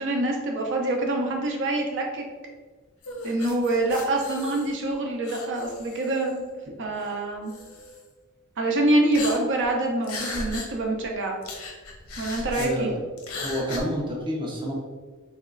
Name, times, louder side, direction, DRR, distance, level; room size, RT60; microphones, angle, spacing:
voice 1, 0.0-2.2 3.2-6.4 6.8-7.5 8.6-11.4 12.2-12.9, right 2 dB, 60° right, 1 dB, 0.7 m, -25 dB
sound 1, 3.0-4.9 5.2-6.4 7.0-7.1 7.5-8.0 9.1-9.7 10.0-10.7 11.0-11.1 11.4-12.7 13.2-13.8, left 2 dB, 85° left, 0.8 m, -37 dB
voice 2, 12.5-13.0 13.4-14.7, equal, 20° right, -2 dB, 0.6 m, -29 dB
3.5 x 3.1 x 3.7 m, 1.4 s
head